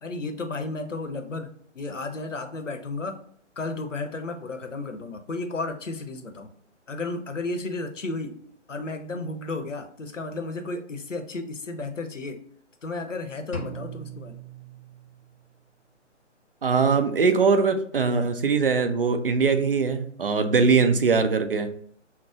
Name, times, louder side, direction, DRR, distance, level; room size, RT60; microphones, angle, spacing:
voice 1, 0.0-3.2 3.6-6.5 6.9-8.4 8.7-12.4 12.8-14.4, left 3 dB, 85° left, 7 dB, 0.7 m, -33 dB
sound 1, 13.5-15.5, right 3 dB, 30° left, 0.5 m, -39 dB
voice 2, 16.6-21.7, right 5 dB, 50° right, 8 dB, 0.5 m, -21 dB
5.6 x 2.0 x 2.4 m, 0.62 s
figure-of-eight pair, 140°, 37 cm